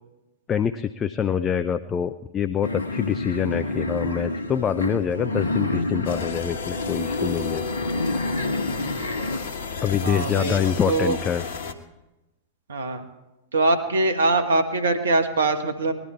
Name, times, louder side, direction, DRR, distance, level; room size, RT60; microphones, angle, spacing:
voice 1, 0.5-7.6 9.8-11.4, left 8 dB, 25° left, 10 dB, 0.5 m, -25 dB
sound 1, 2.6-9.4, left 2 dB, 80° left, 1.1 m, -28 dB
sound 2, 6.0-11.7, left 5 dB, 60° left, 1.3 m, -33 dB
voice 2, 10.0-10.6 10.9-11.2 12.7-13.0 13.5-15.9, right 2 dB, 70° right, 7 dB, 1.5 m, -22 dB
20.0 x 12.0 x 4.5 m, 1.0 s
figure-of-eight pair, 95°, 0 cm